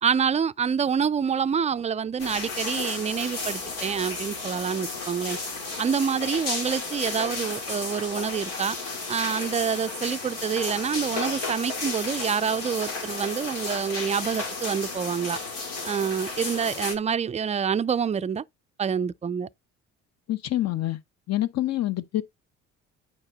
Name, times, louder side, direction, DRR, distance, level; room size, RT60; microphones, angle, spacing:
voice 1, 0.0-5.4 5.8-8.8 9.1-15.4 15.8-18.4 18.8-19.5, right 7 dB, 20° right, 0.4 m, -27 dB
sound 1, 2.2-17.0, left 3 dB, 85° left, 2.4 m, -33 dB
voice 2, 20.3-21.0 21.3-22.2, left 14 dB, 50° left, 0.9 m, -26 dB
8.9 x 4.8 x 4.0 m
hypercardioid pair, 65°, 34 cm